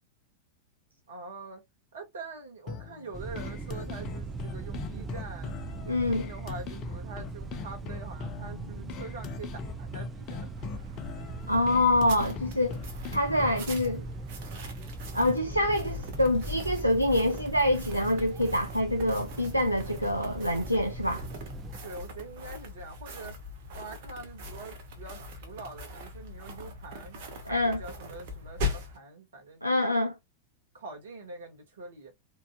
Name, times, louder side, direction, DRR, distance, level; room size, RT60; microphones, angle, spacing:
voice 1, 1.1-1.6 1.9-5.6 6.1-9.5 9.8-10.5 21.8-23.4 23.7-30.1 30.7-32.1, right 3 dB, 65° right, 1.5 m, -44 dB
sound 1, 2.7-13.7, left 6 dB, 40° left, 0.6 m, -41 dB
sound 2, 3.1-21.8, right 4 dB, 20° right, 0.4 m, -40 dB
voice 2, 5.9-6.3 11.5-12.8 13.1-14.0 15.1-21.2 27.5-27.8 29.6-30.1, left 1 dB, 90° right, 0.4 m, -26 dB
sound 3, 10.6-29.0, left 3 dB, 50° right, 1.3 m, -41 dB
4.5 x 2.7 x 2.2 m
figure-of-eight pair, 90°, 0 cm